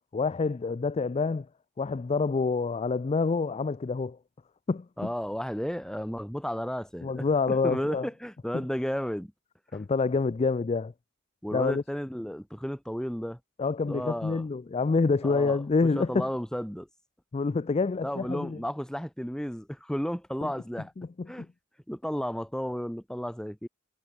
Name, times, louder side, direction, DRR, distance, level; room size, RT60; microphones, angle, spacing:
voice 1, 0.1-1.5 1.8-4.2 4.7-4.9 7.0-8.1 9.7-10.9 11.5-11.8 13.6-16.3 17.3-18.6 20.4-20.5 21.0-21.3, left 4 dB, 30° left, 0.4 m, -27 dB
voice 2, 5.0-9.3 9.7-9.9 11.4-13.4 13.9-14.4 15.2-15.6 16.0-16.9 18.0-20.9 21.3-21.5 21.9-23.7, equal, 5° left, 1.8 m, -33 dB
head